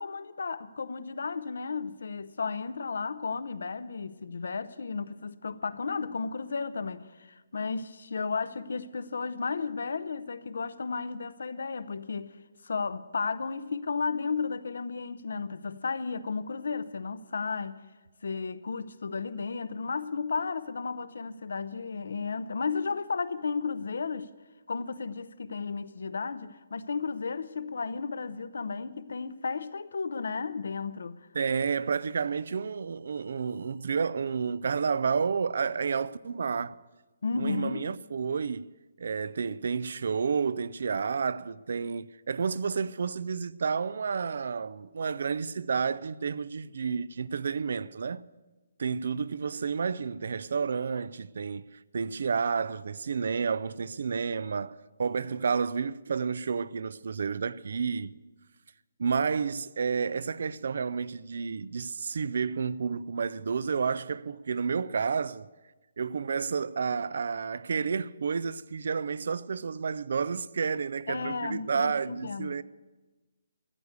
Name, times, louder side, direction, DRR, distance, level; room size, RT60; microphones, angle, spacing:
voice 1, 0.0-12.4 12.6-17.8 18.2-24.3 24.7-31.2 37.2-37.9 71.1-72.6, left 4 dB, 75° left, 0.8 m, -33 dB
voice 2, 31.3-36.8 37.4-38.7 39.0-48.2 48.8-51.7 51.9-58.2 59.0-65.5 66.0-72.6, right 5 dB, 65° right, 0.4 m, -30 dB
14.0 x 8.0 x 8.3 m
hypercardioid pair, 165°, 0 cm